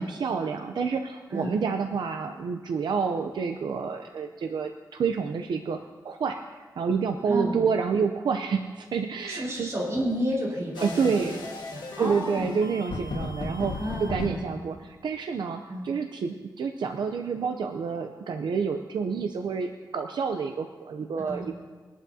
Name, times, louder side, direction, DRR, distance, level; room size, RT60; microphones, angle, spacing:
voice 1, 0.0-5.8 6.0-6.4 6.8-9.7 10.8-11.4 12.0-21.5, right 5 dB, 80° right, 5 dB, 0.6 m, -28 dB
voice 2, 1.3-1.6 7.3-7.6 9.3-12.5 13.8-14.5 15.7-15.8 21.2-21.5, equal, 40° right, -4 dB, 4.7 m, -31 dB
sound 1, 10.7-14.3, left 3 dB, 85° left, 1.5 m, -35 dB
22.5 x 11.0 x 2.8 m, 1.4 s
wide cardioid pair, 120°, 8 cm